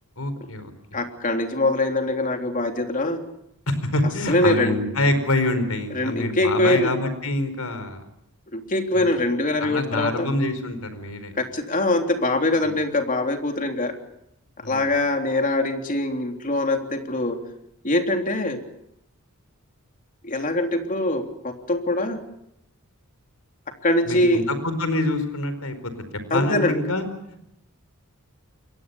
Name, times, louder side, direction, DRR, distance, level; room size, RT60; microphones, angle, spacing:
voice 1, 0.2-1.0 3.7-8.1 8.9-9.1 9.6-11.3 12.6-12.8 14.6-14.9 24.1-25.9 26.3-27.5, left 2 dB, 90° left, 11 dB, 4.8 m, -26 dB
voice 2, 0.9-3.2 4.3-4.8 5.9-6.9 8.5-10.3 11.4-13.9 14.6-17.4 17.8-18.6 20.2-22.2 23.8-24.4 26.3-26.7, left 2 dB, 40° left, 4 dB, 3.4 m, -23 dB
28.0 x 23.5 x 7.0 m, 0.79 s
head